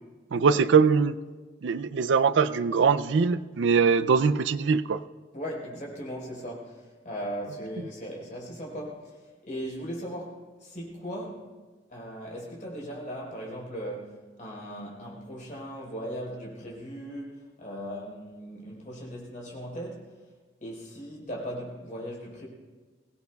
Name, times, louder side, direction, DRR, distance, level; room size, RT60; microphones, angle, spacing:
voice 1, 0.3-1.2 1.6-5.0, right 5 dB, 75° right, 14 dB, 0.4 m, -22 dB
voice 2, 5.3-11.5 11.9-20.2 20.6-22.5, equal, 40° left, -3 dB, 4.3 m, -38 dB
22.5 x 17.5 x 2.3 m, 1.4 s
head